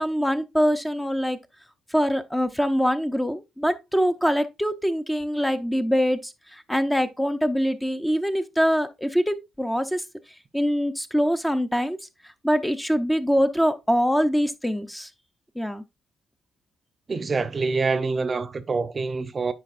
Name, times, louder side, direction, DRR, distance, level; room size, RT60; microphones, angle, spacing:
voice 1, 0.0-1.4 1.9-10.0 10.5-12.0 12.2-15.1 15.6-15.8, equal, 5° left, 0.5 m, -24 dB
voice 2, 17.1-19.5, right 4 dB, 35° right, 0.6 m, -26 dB
9.5 x 4.5 x 2.5 m
cardioid pair, 90°, 0 cm